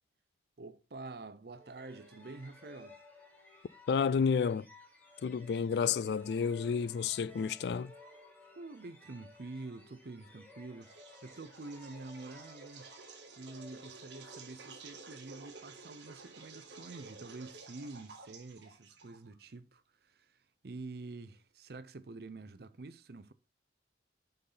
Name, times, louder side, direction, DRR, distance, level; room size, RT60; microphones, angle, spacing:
voice 1, 0.6-3.0 8.5-12.9 13.4-23.3, right 3 dB, 55° right, 0.6 m, -47 dB
sound 1, 1.6-15.1, left 2 dB, 10° left, 1.5 m, -58 dB
voice 2, 3.9-4.7 5.2-7.9, left 6 dB, 60° left, 0.3 m, -30 dB
sound 2, 10.8-19.4, right 4 dB, 70° right, 1.6 m, -52 dB
6.9 x 5.6 x 3.8 m
head